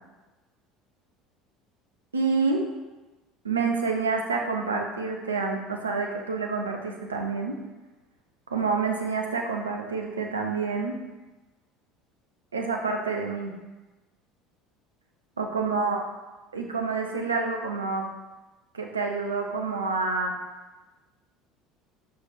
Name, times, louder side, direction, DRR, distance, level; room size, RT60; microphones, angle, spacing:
voice 1, 2.1-2.7 3.4-7.6 8.5-10.9 12.5-13.5 15.4-16.0 16.5-18.1 18.7-20.3, right 4 dB, 85° right, 2 dB, 0.9 m, -28 dB
6.1 x 5.3 x 5.0 m, 1.1 s
figure-of-eight pair, 65°, 0 cm